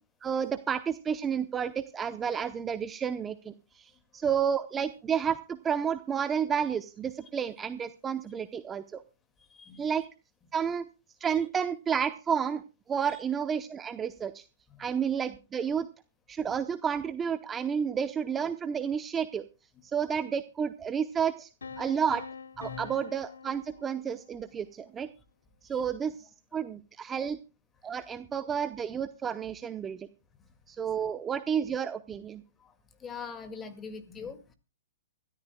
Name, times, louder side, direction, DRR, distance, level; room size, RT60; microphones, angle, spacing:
voice 1, 0.2-9.0 9.8-10.0 10.5-10.8 11.2-12.6 12.9-14.4 14.8-15.9 16.3-19.4 19.8-21.5 21.8-22.2 22.6-25.1 25.6-27.4 27.8-30.1 30.7-32.4, right 7 dB, 15° right, 12 dB, 0.7 m, -31 dB
voice 2, 9.5-9.9 14.7-14.8 22.6-22.9 25.7-25.8 32.6-32.7 33.0-34.6, left 5 dB, 15° left, 9 dB, 2.0 m, -43 dB
sound 1, 21.6-24.5, left 5 dB, 90° left, 1.0 m, -45 dB
24.0 x 13.5 x 2.2 m, 0.31 s
hypercardioid pair, 140°, 0 cm